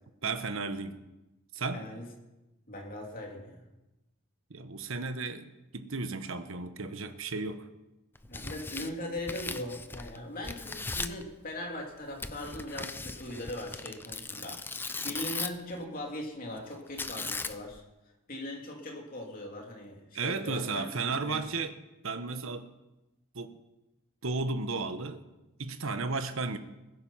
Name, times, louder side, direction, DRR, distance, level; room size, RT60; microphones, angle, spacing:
voice 1, 0.2-1.0 1.5-1.9 4.5-7.7 20.1-21.7 22.0-22.7 23.3-23.5 24.2-25.2 25.6-26.6, right 4 dB, 65° right, 10 dB, 1.1 m, -34 dB
voice 2, 1.7-2.1 2.7-3.6 8.3-17.8 18.3-20.9 21.2-21.4, left 1 dB, 40° left, 0 dB, 3.2 m, -40 dB
Tearing, 8.2-10.2 10.4-11.2 12.2-15.7 17.0-17.8, left 3 dB, 10° left, 0.5 m, -38 dB
21.0 x 9.9 x 5.7 m, 1.0 s
head